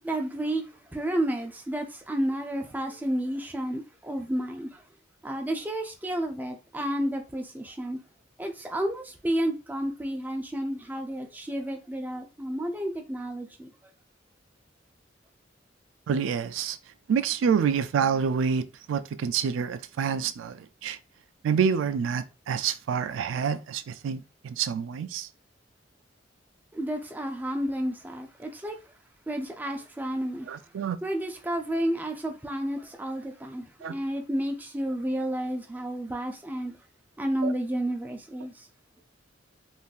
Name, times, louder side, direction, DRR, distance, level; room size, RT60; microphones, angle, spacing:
voice 1, 0.0-0.7 0.9-4.8 5.2-8.0 8.4-13.7 26.7-28.8 29.3-30.5 31.0-36.8 37.2-38.7, right 1 dB, 10° right, 0.4 m, -31 dB
voice 2, 16.1-16.8 17.1-21.0 21.4-25.3 30.5-31.0 33.8-33.9 37.4-37.5, right 7 dB, 85° right, 0.3 m, -27 dB
3.6 x 2.5 x 2.3 m
head